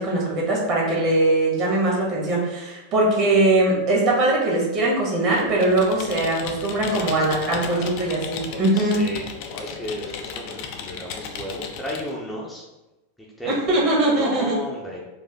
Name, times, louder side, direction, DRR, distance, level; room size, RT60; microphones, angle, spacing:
voice 1, 0.0-9.0 13.4-14.6, right 2 dB, 40° right, -3 dB, 1.4 m, -21 dB
Computer keyboard, 5.3-12.1, left 6 dB, 45° left, 0.5 m, -35 dB
voice 2, 7.0-8.0 8.7-12.6 13.4-13.5 14.2-15.0, equal, 5° left, -5 dB, 0.7 m, -34 dB
4.5 x 2.5 x 3.5 m, 1.0 s
figure-of-eight pair, 90°, 0 cm